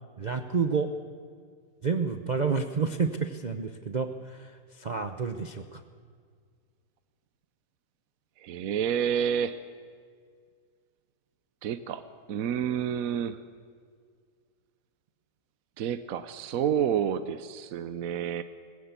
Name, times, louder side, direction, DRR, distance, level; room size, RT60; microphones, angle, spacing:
voice 1, 0.2-0.9 1.8-5.8, right 5 dB, 40° right, 7 dB, 0.6 m, -29 dB
voice 2, 8.4-9.6 11.6-12.0 12.3-13.4 15.8-18.4, right 8 dB, 65° right, 11 dB, 1.1 m, -29 dB
20.0 x 16.0 x 8.2 m, 2.1 s
omnidirectional pair, 1.7 m